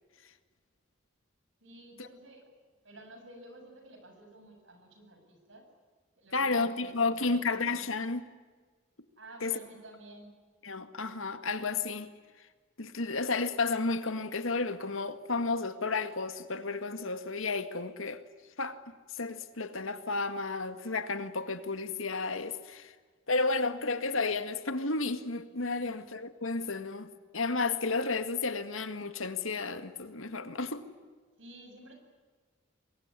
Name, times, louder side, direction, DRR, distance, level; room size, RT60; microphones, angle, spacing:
voice 1, 1.6-2.5 2.8-5.7 6.2-7.5 9.2-10.3 25.7-26.0 31.4-32.0, right 1 dB, 70° right, 7.4 m, -52 dB
voice 2, 6.3-8.3 9.4-9.5 10.6-12.1 12.8-18.2 18.6-18.8 19.1-22.9 23.3-30.9, left 3 dB, 85° left, 2.0 m, -32 dB
24.5 x 22.0 x 9.8 m
head